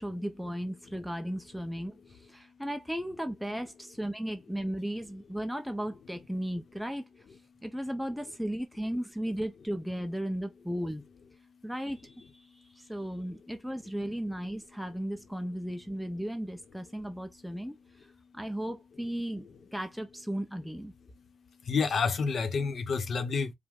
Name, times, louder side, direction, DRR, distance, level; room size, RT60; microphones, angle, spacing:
voice 1, 0.0-7.0 7.6-11.0 11.6-17.8 18.3-19.5 19.7-20.9, equal, ahead, 0.5 m, -35 dB
voice 2, 21.6-23.5, left 5 dB, 50° left, 0.8 m, -29 dB
4.9 x 2.1 x 3.5 m
wide cardioid pair, 150°, 0 cm